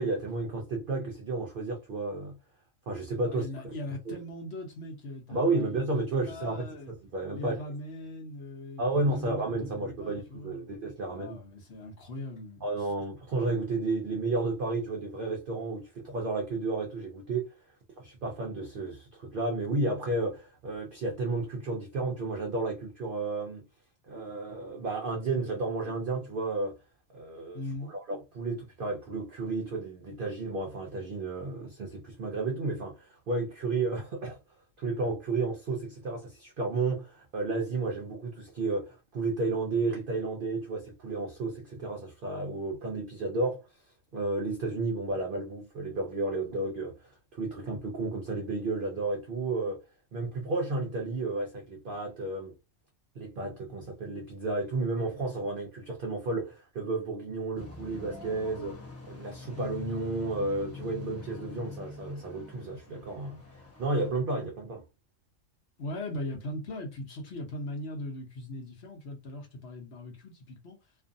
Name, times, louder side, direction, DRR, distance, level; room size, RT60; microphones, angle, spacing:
voice 1, 0.0-2.4 2.9-3.8 4.1-4.2 5.3-7.6 8.8-11.4 12.6-17.5 18.0-23.7 24.1-26.8 27.1-34.4 34.8-43.6 44.1-49.8 50.1-52.5 53.2-63.4 63.8-64.8, right 3 dB, 55° right, 0.6 m, -32 dB
voice 2, 3.2-5.9 6.3-6.9 7.3-10.7 11.0-12.7 27.5-27.9 65.8-70.8, left 1 dB, 60° left, 1.0 m, -40 dB
sound 1, 57.6-64.1, left 6 dB, 15° left, 0.5 m, -44 dB
2.5 x 2.4 x 2.5 m
omnidirectional pair, 1.4 m